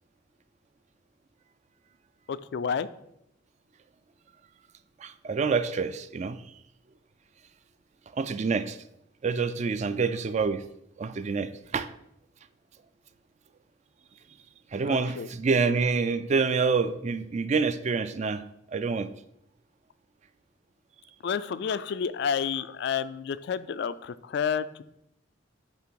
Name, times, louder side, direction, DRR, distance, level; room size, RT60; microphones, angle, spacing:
voice 1, 2.3-2.9 14.8-15.3 21.2-24.8, left 7 dB, 60° left, 14 dB, 0.3 m, -30 dB
voice 2, 5.0-6.4 8.1-8.8 9.2-10.6 11.0-11.9 14.7-18.4 18.7-19.1, right 4 dB, 35° right, 12 dB, 0.3 m, -27 dB
8.8 x 3.4 x 4.6 m, 0.78 s
head